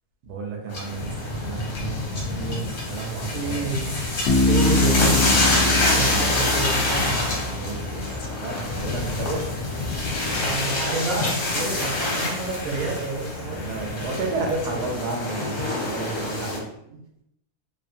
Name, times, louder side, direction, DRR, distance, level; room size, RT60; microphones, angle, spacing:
voice 1, 0.3-3.7 5.9-6.3 7.5-8.0 8.4-9.5 12.8-13.0 13.5-16.6, right 3 dB, 80° right, 0 dB, 1.1 m, -32 dB
sound 1, 0.7-16.6, left 2 dB, 60° left, 1.1 m, -26 dB
voice 2, 3.3-3.9 4.4-5.3 5.9-7.3 10.3-13.7 16.9-17.0, right 3 dB, 55° right, -2 dB, 0.8 m, -29 dB
Bass guitar, 4.3-8.0, left 2 dB, 75° left, 0.5 m, -24 dB
2.8 x 2.4 x 2.5 m, 0.80 s
omnidirectional pair, 1.7 m